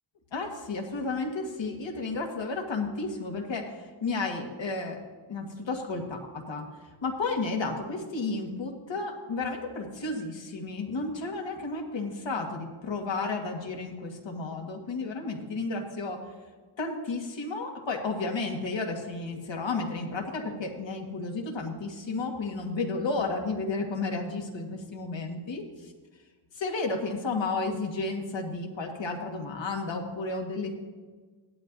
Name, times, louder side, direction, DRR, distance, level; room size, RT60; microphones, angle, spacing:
voice 1, 0.3-5.0 5.3-6.7 7.0-16.2 16.8-25.6 26.5-30.8, left 3 dB, 65° left, 1 dB, 1.8 m, -32 dB
17.0 x 11.5 x 2.7 m, 1.4 s
wide cardioid pair, 170°, 49 cm